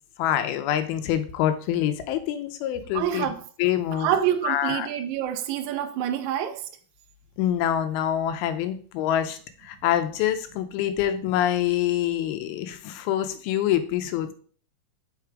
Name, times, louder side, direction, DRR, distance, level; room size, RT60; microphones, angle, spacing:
voice 1, 0.2-3.3 3.6-4.1 4.4-4.9 7.4-14.3, left 11 dB, 90° left, 2.6 m, -26 dB
voice 2, 2.9-3.4 3.9-6.7, right 10 dB, 85° right, 1.6 m, -27 dB
5.7 x 4.6 x 4.8 m
omnidirectional pair, 4.3 m